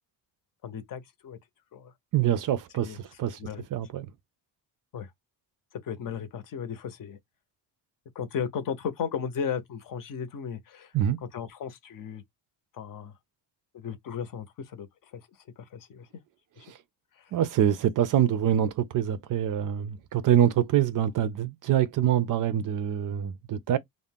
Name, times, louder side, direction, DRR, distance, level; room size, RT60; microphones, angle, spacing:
voice 1, 0.6-1.4 1.7-1.9 2.7-3.0 3.4-3.6 4.9-5.1 5.8-7.2 8.1-10.9 11.3-12.2 12.7-13.1 13.7-15.2 15.6-16.1 16.6-16.7 17.2-17.3, left 7 dB, 55° left, 0.7 m, -35 dB
voice 2, 2.1-3.4 3.7-4.1 10.9-11.2 16.7-16.8 17.3-23.8, right 10 dB, 50° right, 0.4 m, -25 dB
2.5 x 2.0 x 3.4 m
cardioid pair, 125°, 41 cm